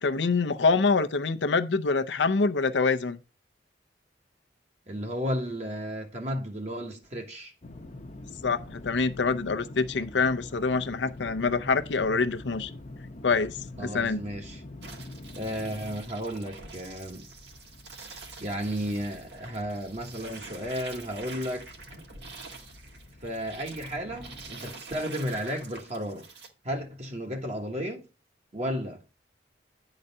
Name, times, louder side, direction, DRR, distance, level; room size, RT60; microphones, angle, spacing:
voice 1, 0.0-3.2 8.4-12.7 13.2-14.2, left 4 dB, 85° left, 0.6 m, -25 dB
voice 2, 4.9-7.5 13.8-14.6 15.3-17.3 18.4-21.7 23.2-26.3 26.6-28.1 28.5-29.0, equal, 40° right, 1.3 m, -33 dB
sound 1, 7.6-24.5, left 2 dB, 40° left, 0.8 m, -46 dB
sound 2, 14.8-26.5, right 4 dB, 70° right, 1.7 m, -46 dB
9.9 x 4.0 x 5.3 m
head